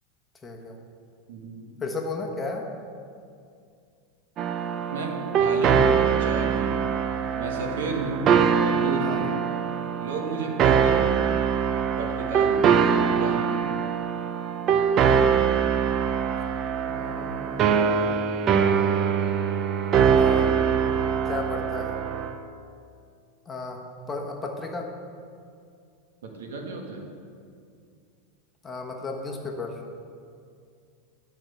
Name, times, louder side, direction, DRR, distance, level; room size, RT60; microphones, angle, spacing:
voice 1, 0.4-0.8 1.8-2.7 9.0-9.3 16.9-17.7 20.2-20.9 21.2-22.0 23.5-23.8 24.1-24.9 28.6-29.8, left 3 dB, 15° left, 1 dB, 1.2 m, -34 dB
voice 2, 1.3-1.7 4.9-6.8 7.3-8.3 8.6-9.4 10.0-11.2 12.0-12.8 13.2-13.6 26.2-27.1, right 3 dB, 90° right, 1 dB, 1.6 m, -33 dB
sound 1, 4.4-22.3, right 7 dB, 35° right, 0.5 m, -23 dB
10.5 x 4.6 x 6.6 m, 2.3 s
supercardioid pair, 135°, 0 cm